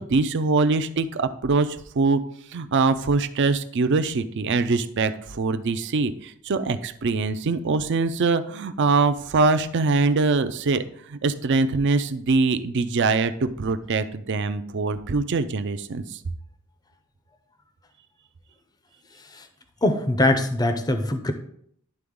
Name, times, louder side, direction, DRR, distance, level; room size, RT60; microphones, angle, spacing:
voice 1, 0.0-2.2 2.5-16.2, right 3 dB, 55° right, 11 dB, 0.5 m, -23 dB
voice 2, 19.8-21.3, left 1 dB, 20° left, 8 dB, 0.5 m, -22 dB
11.0 x 3.9 x 3.6 m, 0.67 s
head